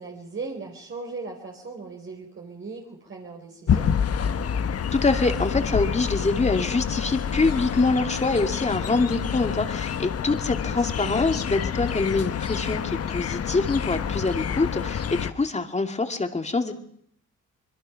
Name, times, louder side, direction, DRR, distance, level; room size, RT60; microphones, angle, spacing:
voice 1, 0.0-3.9 10.7-11.2, right 4 dB, 40° right, 0 dB, 3.8 m, -38 dB
sound 1, 3.7-15.3, left 7 dB, 55° left, 1.3 m, -28 dB
voice 2, 4.9-16.7, left 3 dB, 20° left, 6 dB, 2.5 m, -25 dB
25.5 x 22.0 x 5.8 m, 0.69 s
cardioid pair, 90°, 30 cm